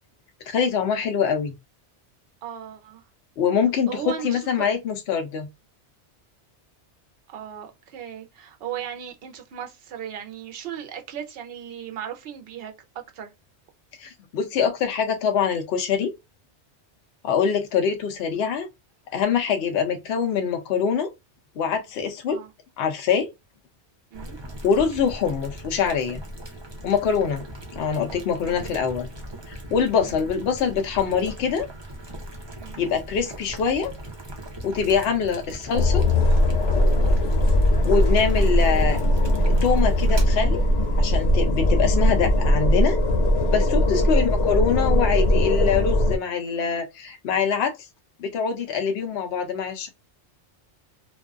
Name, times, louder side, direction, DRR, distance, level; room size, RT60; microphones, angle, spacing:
voice 1, 0.5-1.5 3.4-3.9 4.2-5.5 14.0-16.1 17.2-18.7 19.1-21.1 21.6-22.4 22.8-23.3 24.6-26.2 26.8-27.4 27.7-29.1 29.7-31.7 32.8-33.9 34.6-36.0 37.8-39.0 39.6-40.7 41.0-43.0 43.5-47.8 48.2-49.9, left 6 dB, 70° left, 0.8 m, -24 dB
voice 2, 2.4-3.0 3.9-4.7 7.3-12.7 13.1-13.3 22.3-22.5 24.1-24.4 28.1-28.8 29.9-30.2 32.6-32.9 41.9-42.1 44.0-44.2, right 9 dB, 65° right, 0.7 m, -37 dB
Boiling, 24.1-40.2, right 1 dB, 35° right, 0.5 m, -39 dB
sound 1, 35.7-46.2, left 1 dB, 90° left, 1.2 m, -20 dB
2.5 x 2.2 x 2.3 m
omnidirectional pair, 1.2 m